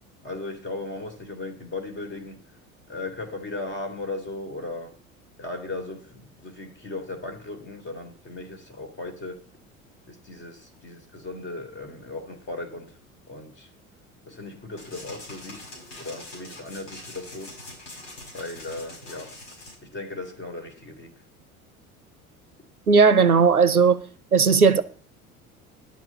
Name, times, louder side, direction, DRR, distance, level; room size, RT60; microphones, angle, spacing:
voice 1, 0.2-2.4 2.9-4.9 5.4-9.4 10.1-12.9 13.3-13.7 14.3-15.7 16.0-17.5 18.3-19.4 19.8-21.2, left 2 dB, 25° left, 3.1 m, -37 dB
sound 1, 14.8-19.8, left 1 dB, 55° left, 5.3 m, -43 dB
voice 2, 22.9-24.0 24.3-24.8, right 5 dB, 90° right, 0.7 m, -16 dB
10.5 x 6.0 x 8.1 m
figure-of-eight pair, 70°, 43 cm